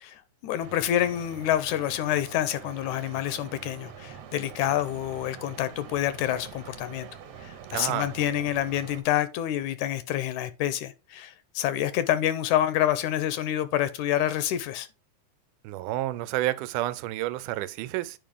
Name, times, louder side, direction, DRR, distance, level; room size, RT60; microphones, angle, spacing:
voice 1, 0.0-7.1 7.4-14.9, left 12 dB, 80° left, 1.9 m, -27 dB
sound 1, 0.6-9.0, right 7 dB, 65° right, 2.0 m, -45 dB
voice 2, 7.7-8.1 15.6-18.2, right 15 dB, 85° right, 2.1 m, -30 dB
9.0 x 5.1 x 3.6 m
omnidirectional pair, 3.6 m